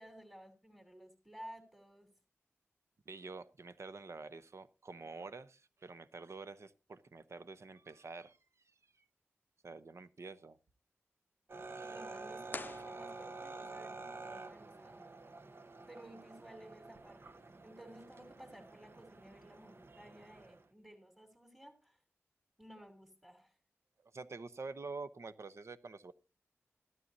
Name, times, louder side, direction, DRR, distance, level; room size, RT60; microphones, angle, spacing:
voice 1, 0.0-2.1 11.8-15.1 15.9-22.0 22.6-23.6, right 1 dB, 5° right, 3 dB, 2.8 m, -55 dB
voice 2, 3.1-8.4 9.6-10.6 11.7-12.0 24.0-26.1, right 3 dB, 70° right, 12 dB, 0.9 m, -48 dB
sound 1, 11.5-20.7, right 3 dB, 55° right, 0.9 m, -49 dB
sound 2, 12.5-13.7, left 3 dB, 40° left, 0.5 m, -47 dB
14.5 x 12.5 x 2.7 m, 0.32 s
wide cardioid pair, 90°, 5 cm